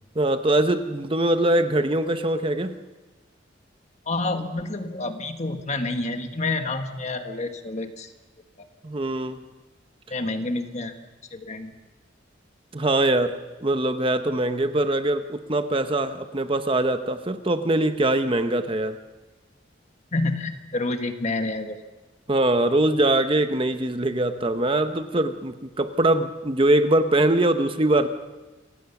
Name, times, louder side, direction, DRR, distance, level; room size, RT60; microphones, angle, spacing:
voice 1, 0.1-2.7 8.8-9.4 12.7-19.0 22.3-28.1, right 1 dB, 30° right, 9 dB, 0.8 m, -22 dB
voice 2, 4.0-8.1 8.6-8.7 10.1-10.9 11.3-11.7 20.1-21.8, left 2 dB, 35° left, 6 dB, 1.5 m, -28 dB
27.0 x 16.5 x 5.9 m, 1.2 s
head